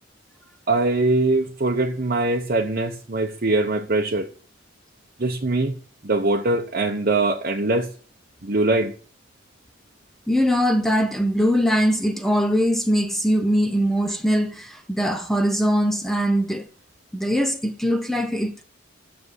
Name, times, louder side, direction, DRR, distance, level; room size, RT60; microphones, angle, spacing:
voice 1, 0.7-4.3 5.2-5.8 6.0-7.9 8.4-8.9, right 2 dB, 45° right, 1.0 m, -22 dB
voice 2, 10.3-16.7 17.1-18.6, equal, ahead, 0.8 m, -21 dB
9.4 x 6.9 x 8.2 m
head